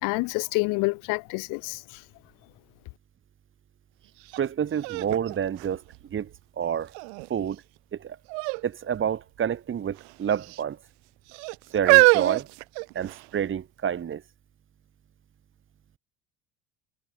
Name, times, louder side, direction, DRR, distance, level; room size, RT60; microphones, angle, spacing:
voice 1, 0.0-2.0, left 27 dB, 80° left, 4.0 m, -28 dB
voice 2, 4.3-5.8 6.1-6.9 7.3-7.6 7.9-8.2 8.6-10.8 11.7-12.5 12.9-14.2, right 8 dB, 40° right, 4.2 m, -29 dB
sound 1, 4.3-4.4 4.8-6.4 6.9-7.4 8.3-8.6 8.9-9.1 10.0-10.6 11.3-13.4 14.1-14.2, right 40 dB or more, 85° right, 3.2 m, -24 dB
supercardioid pair, 100°, 31 cm